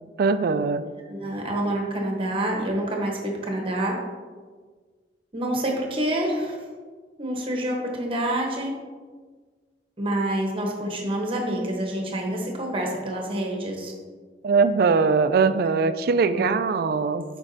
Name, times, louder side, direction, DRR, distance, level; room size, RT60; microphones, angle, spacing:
voice 1, 0.2-0.8 14.4-17.2, right 4 dB, 60° right, 11 dB, 0.3 m, -21 dB
voice 2, 1.1-3.9 5.3-6.6 7.2-8.7 10.0-13.9 16.3-16.5 17.0-17.1, right 1 dB, 30° right, 0 dB, 1.1 m, -27 dB
7.0 x 5.2 x 2.7 m, 1.5 s
head